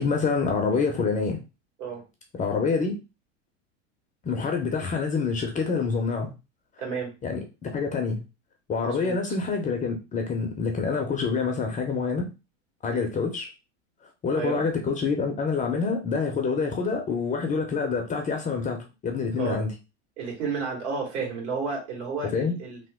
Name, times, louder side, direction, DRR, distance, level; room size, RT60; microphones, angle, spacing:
voice 1, 0.0-1.4 2.3-3.0 4.2-6.3 7.2-8.2 8.7-12.3 12.8-13.5 14.0-19.7 22.3-22.6, left 4 dB, 20° left, 3 dB, 0.5 m, -27 dB
voice 2, 6.8-7.1 8.8-9.2 12.9-13.1 14.3-14.6 19.4-19.6 20.2-22.8, right 5 dB, 65° right, 0 dB, 1.8 m, -31 dB
2.9 x 2.0 x 3.5 m, 0.28 s
hypercardioid pair, 110°, 38 cm